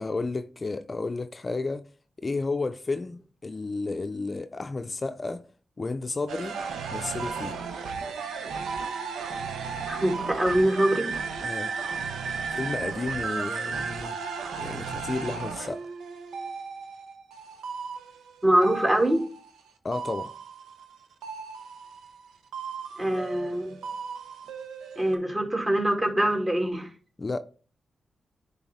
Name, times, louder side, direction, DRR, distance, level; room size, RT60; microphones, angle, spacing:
voice 1, 0.0-1.9 2.2-5.5 5.8-6.6 6.9-7.6 11.4-11.8 12.5-14.2 14.6-15.9 19.8-20.3 27.2-27.4, left 3 dB, 40° left, 0.5 m, -32 dB
sound 1, 6.3-19.6 19.9-22.3 22.5-25.2, right 5 dB, 90° right, 0.7 m, -35 dB
voice 2, 9.8-11.1 18.4-19.3 23.0-23.8 25.0-26.9, right 1 dB, 25° right, 2.5 m, -24 dB
10.0 x 3.5 x 3.6 m
supercardioid pair, 45°, 0 cm